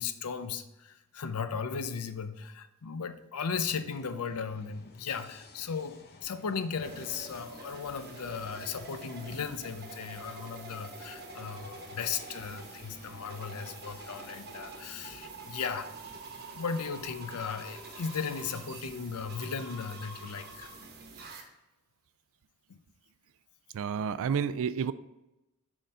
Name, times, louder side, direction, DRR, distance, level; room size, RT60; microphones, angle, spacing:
voice 1, 0.0-15.9 16.5-20.7 22.7-22.8, left 6 dB, 90° left, 10 dB, 0.6 m, -36 dB
sound 1, 3.5-19.4, left 3 dB, 45° left, 0.7 m, -57 dB
sound 2, 6.8-21.4, right 3 dB, 45° right, 1.1 m, -46 dB
voice 2, 23.7-24.9, right 7 dB, 65° right, 14 dB, 0.3 m, -30 dB
6.4 x 3.9 x 5.4 m, 0.95 s
head